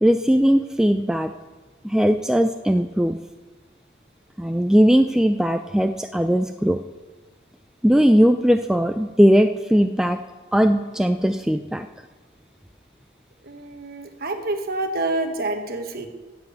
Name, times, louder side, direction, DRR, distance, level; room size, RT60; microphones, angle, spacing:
voice 1, 0.0-1.3 1.8-3.2 4.4-6.8 7.8-10.2 10.5-11.9, equal, 5° right, 7 dB, 0.3 m, -19 dB
voice 2, 13.4-16.1, right 2 dB, 50° right, 6 dB, 1.3 m, -27 dB
10.5 x 8.3 x 7.9 m, 1.3 s
head